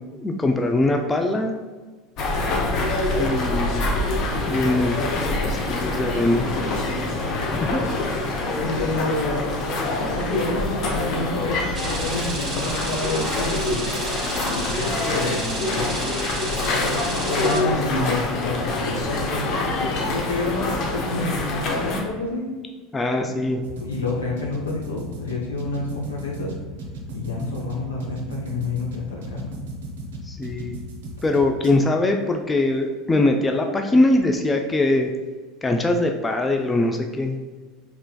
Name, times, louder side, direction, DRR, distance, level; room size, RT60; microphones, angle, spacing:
voice 1, 0.1-1.5 3.2-3.9 4.5-6.5 7.5-7.8 22.9-23.6 30.2-30.8 31.2-35.1 35.6-37.4, left 2 dB, 20° left, 4 dB, 0.3 m, -22 dB
sound 1, 2.2-22.0, left 2 dB, 50° left, 0.6 m, -25 dB
voice 2, 8.6-9.5 10.0-13.9 14.8-15.5 16.6-22.5 23.2-26.5 27.1-29.5, left 2 dB, 85° left, -3 dB, 0.8 m, -29 dB
sound 2, 11.7-17.6, right 2 dB, 25° right, 0.9 m, -32 dB
sound 3, 23.6-31.7, right 1 dB, 75° right, 0.5 m, -35 dB
3.2 x 2.9 x 2.2 m, 1.4 s
hypercardioid pair, 75°, 0 cm